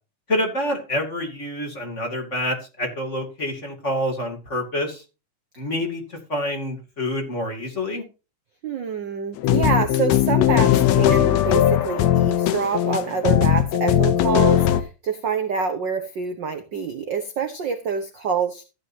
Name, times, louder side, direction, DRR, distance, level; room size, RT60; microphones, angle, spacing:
voice 1, 0.3-5.0 5.6-8.0, left 1 dB, 25° left, 2 dB, 2.6 m, -27 dB
voice 2, 8.6-18.6, right 6 dB, 60° right, 7 dB, 1.2 m, -26 dB
sound 1, 9.4-14.8, left 11 dB, 70° left, 2.0 m, -19 dB
14.5 x 9.5 x 2.8 m, 0.30 s
omnidirectional pair, 3.5 m